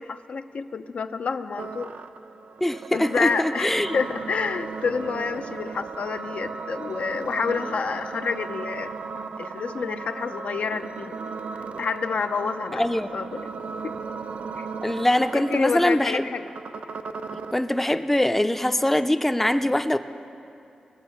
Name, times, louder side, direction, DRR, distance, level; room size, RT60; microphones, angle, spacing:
voice 1, 0.0-1.9 2.9-8.9 9.4-11.1 11.5-12.9 13.1-13.5 13.8-14.0 14.6-14.7 15.3-16.5, left 5 dB, 70° left, 9 dB, 0.5 m, -28 dB
sound 1, 1.6-17.6, right 4 dB, 75° right, 0.5 m, -36 dB
voice 2, 2.6-4.0 12.7-13.1 14.8-16.3 17.5-20.0, left 1 dB, 10° left, 10 dB, 0.4 m, -23 dB
21.0 x 7.1 x 5.7 m, 2.7 s
wide cardioid pair, 100°, 2 cm